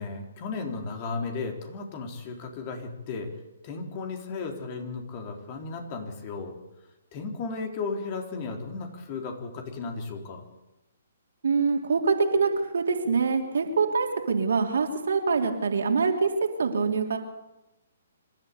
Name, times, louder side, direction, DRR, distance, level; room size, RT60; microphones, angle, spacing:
voice 1, 0.0-3.3 3.6-6.5 7.1-10.4, left 4 dB, 35° left, 3 dB, 3.8 m, -35 dB
voice 2, 11.4-16.3 16.6-17.2, right 4 dB, 65° right, 3 dB, 3.2 m, -24 dB
26.0 x 12.5 x 8.4 m, 0.97 s
figure-of-eight pair, 130°, 0 cm